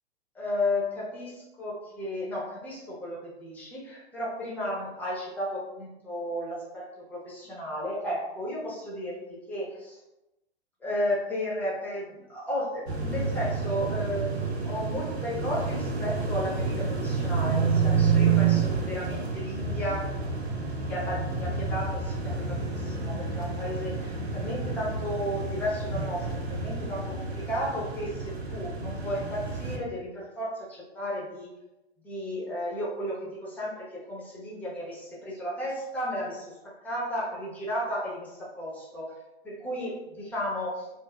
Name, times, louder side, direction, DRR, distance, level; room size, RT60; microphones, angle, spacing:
voice 1, 0.3-10.0 10.8-20.2 20.8-31.5 32.0-36.5 36.8-39.1 39.4-40.9, equal, 5° left, -6 dB, 0.7 m, -34 dB
sound 1, 12.9-29.8, right 5 dB, 85° right, 0.6 m, -29 dB
2.5 x 2.0 x 3.1 m, 0.94 s
figure-of-eight pair, 110°, 31 cm